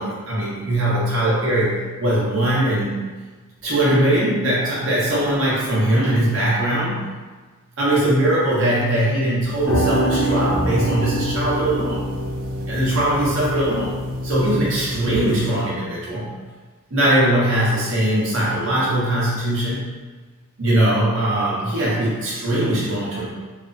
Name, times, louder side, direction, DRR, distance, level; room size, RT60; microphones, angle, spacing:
voice 1, 0.0-3.0 3.6-7.0 7.8-12.0 12.6-14.0 14.2-16.3 16.9-19.9 20.6-23.3, right 1 dB, 60° right, -7 dB, 0.9 m, -20 dB
sound 1, 9.5-15.4, right 1 dB, 40° right, 0.5 m, -25 dB
2.9 x 2.1 x 2.4 m, 1.4 s
head